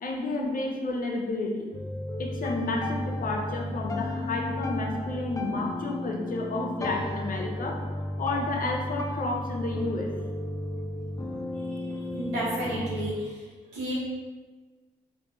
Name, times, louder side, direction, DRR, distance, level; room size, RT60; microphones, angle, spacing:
voice 1, 0.0-1.7 2.2-7.8 8.2-10.1, left 2 dB, 50° left, 1 dB, 0.7 m, -31 dB
sound 1, 1.7-13.1, left 1 dB, 20° left, 0.4 m, -34 dB
voice 2, 12.1-13.1 13.7-13.9, right 1 dB, 85° right, -7 dB, 1.2 m, -31 dB
4.5 x 2.7 x 2.6 m, 1.3 s
hypercardioid pair, 40°, 18 cm